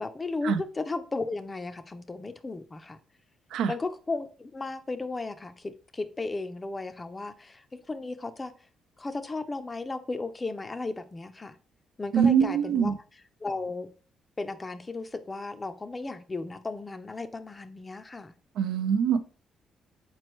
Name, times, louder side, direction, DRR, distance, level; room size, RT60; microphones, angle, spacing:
voice 1, 0.0-3.0 3.7-8.5 9.0-11.6 12.0-12.9 13.4-13.9 14.4-18.3, left 3 dB, 25° left, 0.4 m, -35 dB
voice 2, 12.1-12.9 18.6-19.2, right 7 dB, 85° right, 0.4 m, -23 dB
4.2 x 3.1 x 3.0 m
cardioid pair, 90°, 0 cm